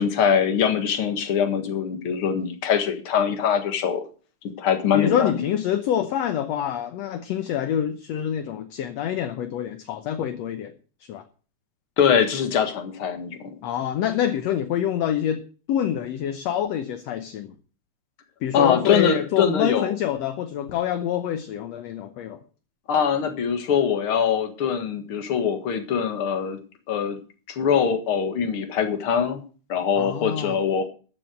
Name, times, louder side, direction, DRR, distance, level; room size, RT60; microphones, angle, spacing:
voice 1, 0.0-4.0 4.6-5.5 12.0-13.5 18.5-19.9 22.9-26.6 26.9-27.2 27.5-29.4 29.7-30.9, left 7 dB, 50° left, 2.2 m, -23 dB
voice 2, 4.9-10.7 11.1-11.2 13.6-15.4 15.7-17.5 18.4-22.4 29.9-30.6, left 10 dB, 65° left, 1.9 m, -26 dB
14.0 x 7.9 x 6.4 m
omnidirectional pair, 3.6 m